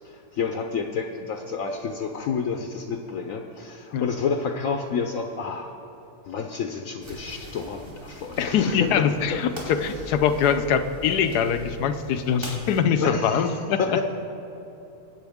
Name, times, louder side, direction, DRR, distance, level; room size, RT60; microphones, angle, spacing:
voice 1, 0.0-5.7 6.3-8.9 9.3-9.7 13.0-14.0, left 5 dB, 65° left, 4 dB, 1.0 m, -29 dB
sound 1, 7.0-12.8, equal, 45° right, 3.1 m, -41 dB
voice 2, 8.4-13.8, left 7 dB, 85° left, 10 dB, 1.2 m, -23 dB
20.5 x 8.6 x 3.6 m, 3.0 s
omnidirectional pair, 1.7 m